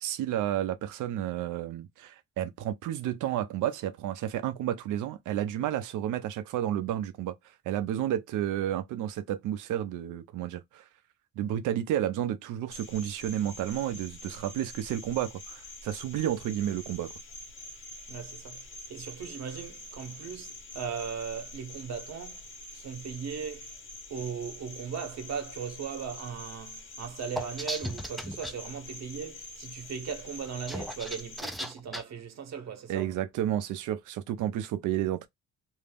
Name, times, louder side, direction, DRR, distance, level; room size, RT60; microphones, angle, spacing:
voice 1, 0.0-7.3 7.7-10.8 11.4-17.1 32.9-35.3, right 11 dB, 85° right, 0.6 m, -31 dB
Cricket, 12.7-31.4, left 1 dB, 40° left, 1.1 m, -46 dB
voice 2, 18.1-22.5 22.7-23.7 24.1-33.1, right 7 dB, 60° right, 1.0 m, -38 dB
sound 1, 27.4-28.5 30.5-32.0, equal, ahead, 0.4 m, -36 dB
2.7 x 2.0 x 3.4 m
cardioid pair, 90°, 30 cm